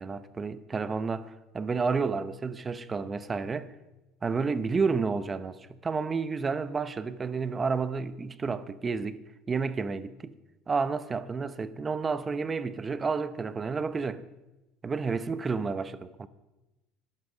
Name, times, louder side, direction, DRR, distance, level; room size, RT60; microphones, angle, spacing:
voice 1, 0.0-3.7 4.2-9.2 9.5-10.3 10.7-14.2 14.8-16.3, right 4 dB, 25° right, 0.8 m, -30 dB
13.0 x 11.5 x 5.1 m
supercardioid pair, 100°, 0 cm